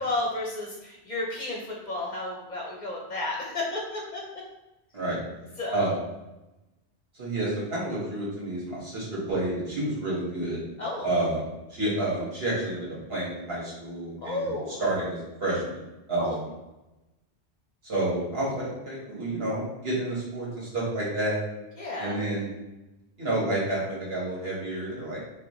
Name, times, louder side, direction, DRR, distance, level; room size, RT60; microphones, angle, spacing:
voice 1, 0.0-4.2 5.6-5.9 10.8-11.1 14.2-14.8 16.2-16.4 21.8-22.1, left 2 dB, 45° left, -2 dB, 0.9 m, -32 dB
voice 2, 7.1-10.6 11.0-15.8 16.1-16.4 17.8-21.4 22.0-22.5 23.2-25.2, right 1 dB, 65° right, -7 dB, 2.0 m, -29 dB
4.8 x 3.0 x 3.1 m, 0.99 s
omnidirectional pair, 1.1 m